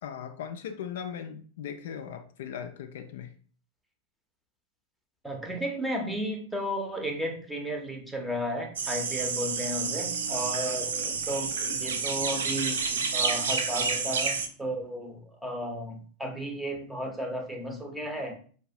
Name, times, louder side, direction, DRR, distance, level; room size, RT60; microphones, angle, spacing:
voice 1, 0.0-3.3, left 8 dB, 60° left, 6 dB, 0.3 m, -38 dB
voice 2, 5.2-18.4, equal, 5° right, 3 dB, 0.7 m, -34 dB
sound 1, 8.8-14.5, right 5 dB, 70° right, 0.4 m, -29 dB
4.5 x 2.2 x 2.6 m, 0.43 s
figure-of-eight pair, 85°, 0 cm